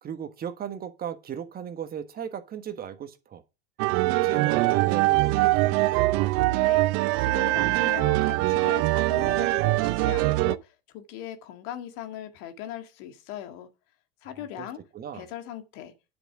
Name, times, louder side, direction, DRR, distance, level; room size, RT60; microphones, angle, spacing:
voice 1, 0.0-3.4 4.0-6.1 14.6-14.7 14.9-15.3, right 8 dB, 30° right, 1.4 m, -36 dB
sound 1, 3.8-10.6, right 19 dB, 50° right, 0.7 m, -23 dB
voice 2, 6.5-6.9 7.2-13.7 14.2-14.9 15.1-15.9, left 11 dB, 55° left, 1.9 m, -39 dB
10.5 x 6.8 x 4.9 m
hypercardioid pair, 90°, 29 cm